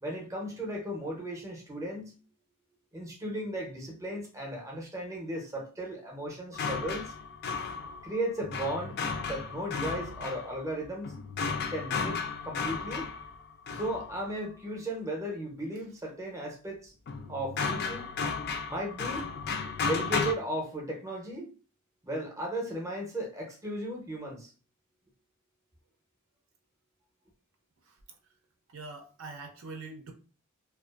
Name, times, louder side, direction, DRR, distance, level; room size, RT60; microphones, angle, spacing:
voice 1, 0.0-2.1 2.9-7.1 8.0-9.0 9.2-11.1 11.7-13.1 13.7-16.9 17.3-18.0 18.7-19.3 19.8-21.5 22.0-24.5, right 1 dB, 15° right, 0.5 m, -35 dB
sound 1, 6.5-14.3 17.1-20.3, left 5 dB, 50° left, 0.3 m, -34 dB
voice 2, 28.7-30.1, right 3 dB, 65° right, 0.5 m, -43 dB
2.4 x 2.3 x 2.3 m
head